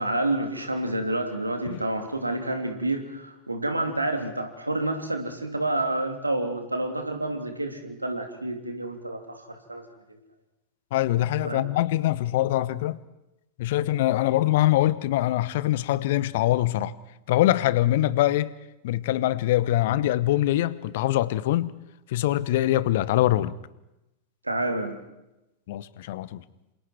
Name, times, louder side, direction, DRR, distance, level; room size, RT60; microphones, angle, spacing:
voice 1, 0.0-9.8 10.1-10.2 11.4-11.7 24.4-25.0, right 2 dB, 85° right, 3.1 m, -29 dB
voice 2, 10.9-13.0 13.6-16.9 17.3-18.5 18.8-21.7 22.1-23.6 25.7-26.4, left 14 dB, 55° left, 1.0 m, -23 dB
28.0 x 27.5 x 4.7 m
figure-of-eight pair, 90°, 0 cm